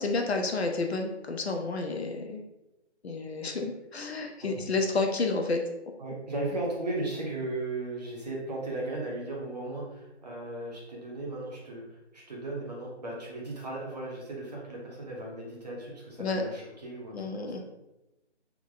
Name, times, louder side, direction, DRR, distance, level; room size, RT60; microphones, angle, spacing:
voice 1, 0.0-2.4 3.0-5.6 16.2-16.4 17.1-17.6, left 3 dB, 65° left, 3 dB, 0.6 m, -30 dB
voice 2, 6.0-17.6, right 2 dB, 35° right, -3 dB, 0.9 m, -36 dB
3.4 x 2.0 x 3.8 m, 0.95 s
figure-of-eight pair, 165°, 35 cm